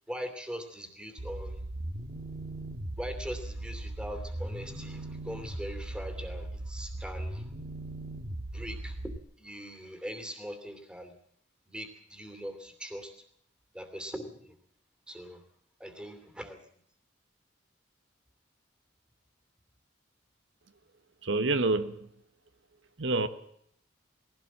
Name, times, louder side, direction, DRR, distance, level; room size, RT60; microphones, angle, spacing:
voice 1, 0.1-1.6 3.0-7.5 8.5-11.1 11.7-13.1 13.7-14.5 15.1-15.4 15.8-16.8, equal, 5° right, 2.8 m, -41 dB
sound 1, 1.2-9.2, right 1 dB, 50° right, 1.7 m, -38 dB
voice 2, 21.2-22.1 23.0-23.3, right 3 dB, 70° right, 1.1 m, -27 dB
21.5 x 16.5 x 7.3 m
head